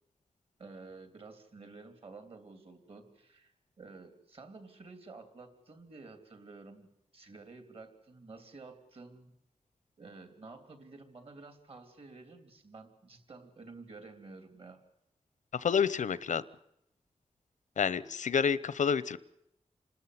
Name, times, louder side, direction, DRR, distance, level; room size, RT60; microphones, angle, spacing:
voice 1, 0.6-9.3 10.0-14.8, right 3 dB, 50° right, 7 dB, 3.2 m, -51 dB
voice 2, 15.5-16.4 17.8-19.2, left 6 dB, 90° left, 17 dB, 0.8 m, -29 dB
27.5 x 13.0 x 9.6 m, 0.80 s
wide cardioid pair, 155°, 12 cm